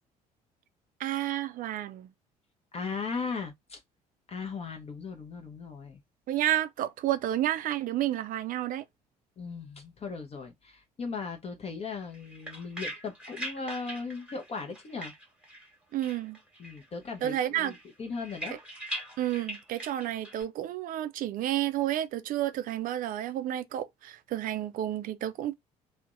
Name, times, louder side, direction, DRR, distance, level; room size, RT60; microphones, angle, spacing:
voice 1, 1.0-2.1 6.3-8.8 15.9-16.4 17.2-17.7 19.2-25.5, right 12 dB, 45° right, 0.4 m, -30 dB
voice 2, 2.7-3.8 4.3-6.0 9.4-15.1 16.6-18.6, left 4 dB, 30° left, 0.6 m, -37 dB
sound 1, 12.0-15.7 16.0-16.9 17.2-20.4, right 1 dB, 5° right, 1.1 m, -42 dB
2.5 x 2.1 x 2.4 m
figure-of-eight pair, 50°, 20 cm